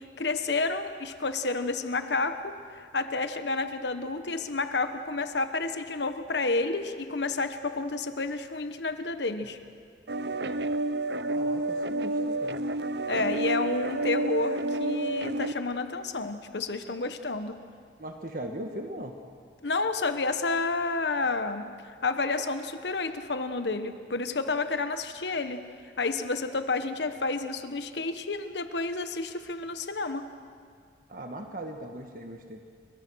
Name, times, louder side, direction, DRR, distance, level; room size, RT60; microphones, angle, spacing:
voice 1, 0.2-9.6 13.1-17.6 19.6-21.7 22.0-25.6 26.0-30.3, left 3 dB, 80° left, 9 dB, 1.2 m, -30 dB
sound 1, 10.1-15.5, right 2 dB, 75° right, 0.8 m, -30 dB
voice 2, 11.3-12.6 18.0-19.1 31.1-32.6, right 1 dB, 50° right, 4 dB, 1.5 m, -39 dB
29.5 x 23.5 x 6.3 m, 2.2 s
head